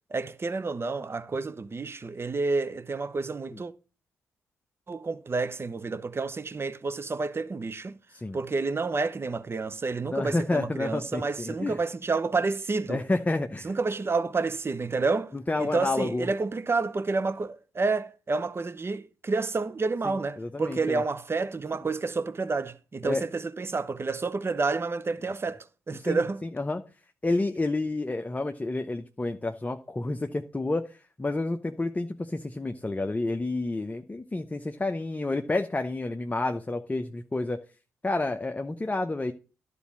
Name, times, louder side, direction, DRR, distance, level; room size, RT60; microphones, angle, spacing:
voice 1, 0.1-3.7 4.9-8.0 8.3-13.0 13.6-15.3 15.6-26.4, right 3 dB, 35° right, 0.8 m, -29 dB
voice 2, 10.1-11.8 12.9-13.7 15.3-16.3 20.0-21.0 23.0-23.2 25.9-26.8 27.2-37.6 38.0-39.3, left 2 dB, 20° left, 0.8 m, -30 dB
11.5 x 4.2 x 7.3 m
hypercardioid pair, 45°, 7 cm